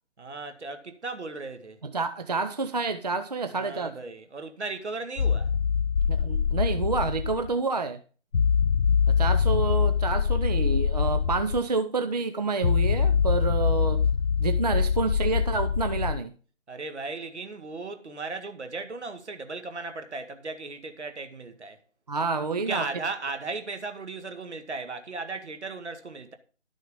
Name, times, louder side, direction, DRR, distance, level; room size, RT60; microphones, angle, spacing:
voice 1, 0.2-1.8 3.6-5.5 16.7-21.8 22.7-26.3, right 3 dB, 65° right, 1.9 m, -36 dB
voice 2, 1.8-4.0 6.1-8.0 9.1-14.1 14.4-16.3 22.1-22.8, right 4 dB, 35° right, 0.6 m, -28 dB
sound 1, 5.2-7.5 8.3-11.6 12.6-16.2, left 6 dB, 50° left, 0.4 m, -24 dB
12.0 x 6.3 x 5.3 m
figure-of-eight pair, 150°, 37 cm